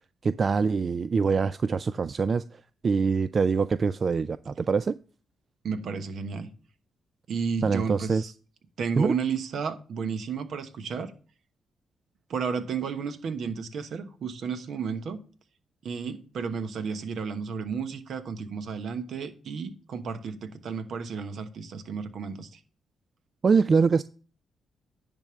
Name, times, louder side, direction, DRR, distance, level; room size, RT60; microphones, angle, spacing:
voice 1, 0.2-2.4 2.8-5.0 7.6-8.3 9.0-9.1 23.4-24.0, right 5 dB, 45° right, 0.3 m, -24 dB
voice 2, 5.6-6.5 7.3-8.3 8.8-11.1 12.3-15.2 15.8-22.5, right 5 dB, 70° right, 1.0 m, -32 dB
10.5 x 3.5 x 6.7 m
cardioid pair, 70°, 0 cm